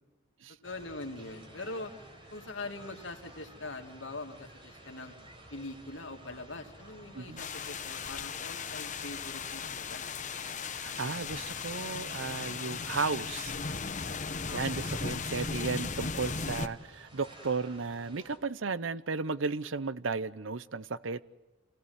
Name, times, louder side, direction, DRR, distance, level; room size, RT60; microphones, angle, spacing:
voice 1, 0.5-1.9 2.3-5.2 5.5-10.1 14.4-14.9, left 2 dB, 75° left, 2.6 m, -43 dB
sound 1, 0.6-18.4, right 1 dB, 25° right, 4.6 m, -53 dB
sound 2, 7.4-16.7, left 5 dB, 40° left, 1.1 m, -37 dB
voice 2, 10.6-13.6 14.5-21.2, right 4 dB, 85° right, 0.8 m, -34 dB
28.5 x 17.0 x 9.5 m
head